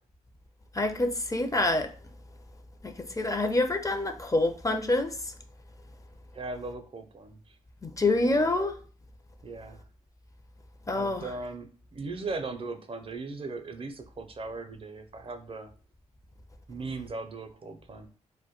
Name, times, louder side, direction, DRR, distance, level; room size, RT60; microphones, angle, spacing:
voice 1, 0.7-1.9 2.8-5.2 7.8-8.8 10.9-11.2, left 2 dB, 20° left, 6 dB, 0.5 m, -26 dB
voice 2, 6.3-7.6 8.2-8.5 9.4-9.8 10.9-15.7 16.7-18.1, right 3 dB, 35° right, 7 dB, 0.5 m, -38 dB
2.2 x 2.1 x 2.8 m, 0.39 s
hypercardioid pair, 40°, 15 cm